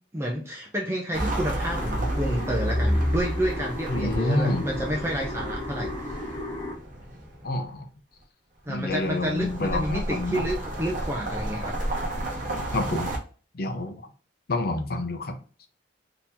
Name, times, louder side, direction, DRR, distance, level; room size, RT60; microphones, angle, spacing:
voice 1, 0.1-5.9 8.7-11.7, equal, 15° right, -1 dB, 0.5 m, -29 dB
sound 1, 1.1-7.6 8.7-13.2, right 1 dB, 45° right, 0.9 m, -31 dB
sound 2, 1.7-6.8, left 2 dB, 35° left, 1.4 m, -36 dB
voice 2, 3.9-4.7 7.4-7.9 8.7-10.4 12.7-13.1 13.5-14.0 14.5-15.4, left 2 dB, 50° left, 6 dB, 0.6 m, -28 dB
3.9 x 2.9 x 2.7 m, 0.39 s
head